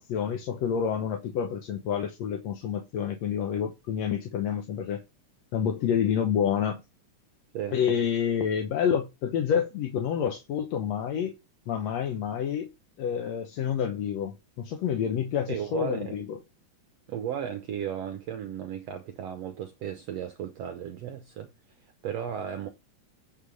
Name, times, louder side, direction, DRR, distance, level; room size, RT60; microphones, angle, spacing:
voice 1, 0.0-5.0 5.5-6.8 7.7-11.4 11.7-12.7 13.0-16.4, left 8 dB, 65° left, 1.8 m, -28 dB
voice 2, 15.5-16.2 17.1-21.5 22.0-22.7, right 9 dB, 70° right, 1.6 m, -35 dB
9.8 x 4.4 x 5.3 m
omnidirectional pair, 3.9 m